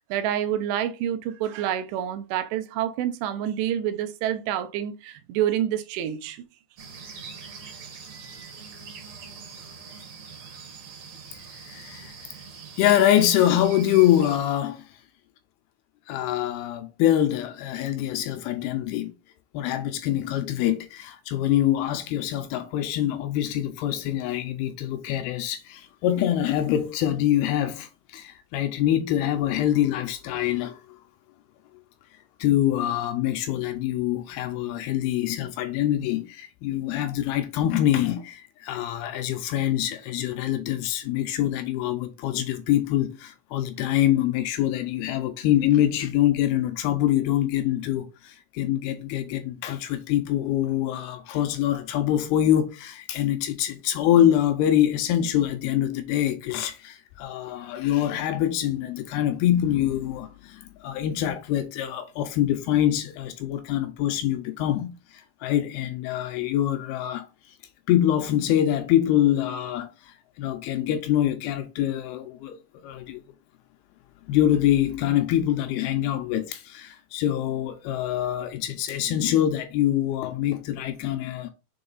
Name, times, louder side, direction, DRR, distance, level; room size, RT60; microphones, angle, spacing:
voice 1, 0.1-6.5, right 10 dB, 90° right, 2.9 m, -28 dB
sound 1, 6.8-14.4, right 5 dB, 55° right, 2.0 m, -43 dB
voice 2, 11.6-12.2 12.8-14.9 16.1-19.1 19.5-31.0 32.4-67.3 67.9-73.2 74.3-81.5, left 12 dB, 80° left, 2.4 m, -25 dB
6.8 x 3.8 x 3.9 m
omnidirectional pair, 4.8 m